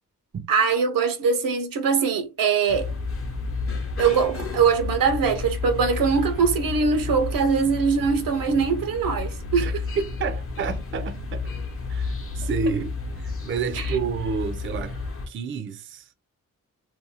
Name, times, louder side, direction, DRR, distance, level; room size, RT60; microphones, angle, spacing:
voice 1, 0.5-2.9 4.0-9.8 13.8-13.9, right 5 dB, 85° right, 0.6 m, -22 dB
sound 1, 2.7-15.3, left 3 dB, 40° left, 0.7 m, -31 dB
voice 2, 9.6-11.5 11.9-15.0 15.3-16.1, right 5 dB, 40° right, 0.4 m, -30 dB
2.5 x 2.3 x 2.7 m
cardioid pair, 55°, 33 cm